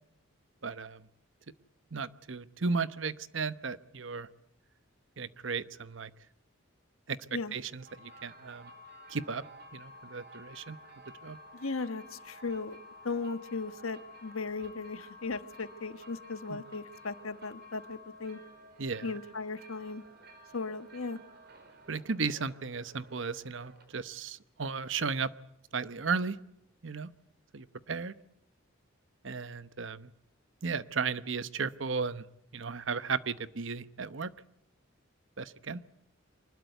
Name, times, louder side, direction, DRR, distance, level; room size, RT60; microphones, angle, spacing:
voice 1, 0.6-1.1 1.9-4.3 5.2-6.1 7.1-7.2 7.5-8.7 9.1-9.4 9.7-10.8 11.2-11.4 16.5-16.6 18.8-19.1 21.9-25.3 25.7-26.4 26.8-27.1 27.5-28.1 29.2-30.1 30.6-32.2 32.5-34.3 35.4-35.8, right 5 dB, 65° right, 15 dB, 0.9 m, -35 dB
sound 1, 7.7-24.2, left 1 dB, 50° right, 4.0 m, -53 dB
voice 2, 11.5-12.8 13.0-18.4 19.0-20.0 20.5-21.2, left 4 dB, 85° left, 12 dB, 1.3 m, -37 dB
25.0 x 20.5 x 8.1 m, 0.79 s
head